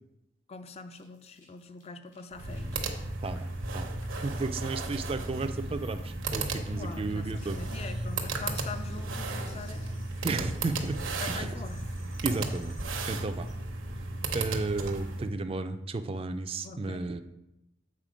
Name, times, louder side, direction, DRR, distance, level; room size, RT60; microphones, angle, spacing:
voice 1, 0.5-2.9 6.7-10.1 11.2-11.9 16.6-17.2, left 4 dB, 30° left, 10 dB, 0.4 m, -43 dB
sound 1, 0.9-13.5, left 1 dB, 75° left, 2.8 m, -56 dB
sound 2, 2.3-15.3, right 2 dB, 80° right, 0.9 m, -35 dB
voice 2, 3.2-4.0 4.2-7.6 10.2-11.0 11.3-11.5 12.2-12.8 13.1-13.5 14.3-17.2, right 3 dB, 30° right, 9 dB, 0.4 m, -33 dB
7.5 x 4.1 x 5.1 m, 0.89 s
head